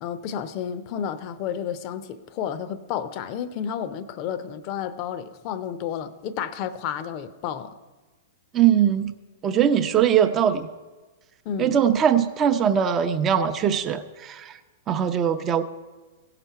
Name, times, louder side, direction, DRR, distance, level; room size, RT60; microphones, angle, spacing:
voice 1, 0.0-7.7 11.4-11.8, left 8 dB, 45° left, 0.7 m, -31 dB
voice 2, 8.5-9.1 9.4-10.7 11.6-14.6 14.9-15.6, right 9 dB, 30° right, 0.7 m, -21 dB
16.0 x 5.9 x 5.7 m
hypercardioid pair, 115°, 0 cm